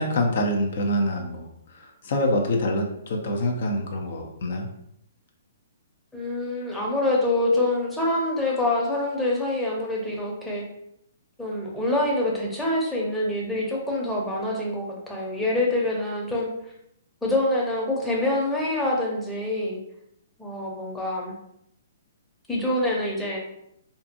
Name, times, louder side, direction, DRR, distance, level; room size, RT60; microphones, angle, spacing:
voice 1, 0.0-1.5 2.0-4.7, left 1 dB, 60° left, 2 dB, 0.5 m, -25 dB
voice 2, 6.1-10.6 11.4-16.5 17.2-19.8 20.4-21.3 22.5-23.4, left 1 dB, 5° left, -3 dB, 0.7 m, -25 dB
2.6 x 2.4 x 2.5 m, 0.75 s
hypercardioid pair, 135°, 0 cm